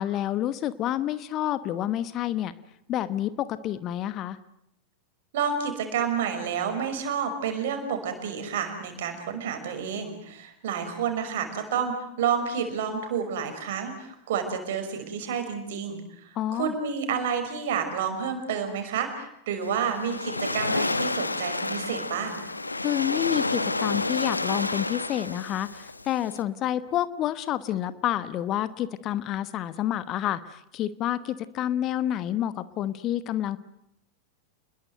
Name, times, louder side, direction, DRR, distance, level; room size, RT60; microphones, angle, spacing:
voice 1, 0.0-2.5 2.9-4.4 16.3-16.7 22.8-33.6, left 12 dB, 35° left, 15 dB, 1.1 m, -29 dB
voice 2, 5.3-22.4, right 7 dB, 55° right, 6 dB, 5.8 m, -30 dB
Waves surf, 19.6-26.4, left 2 dB, 80° left, 1.1 m, -30 dB
29.0 x 21.5 x 7.9 m, 0.76 s
figure-of-eight pair, 90°, 0 cm